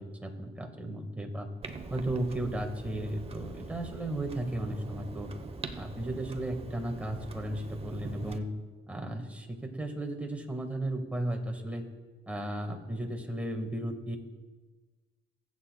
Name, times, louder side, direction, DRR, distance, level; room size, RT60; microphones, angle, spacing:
voice 1, 0.0-1.5 1.9-5.3 5.7-8.5 8.9-11.8 12.3-14.2, right 1 dB, 5° right, 3 dB, 1.5 m, -35 dB
Clock, 1.6-8.4, right 3 dB, 30° right, 0.9 m, -43 dB
23.0 x 8.2 x 2.2 m, 1.3 s
cardioid pair, 90°, 20 cm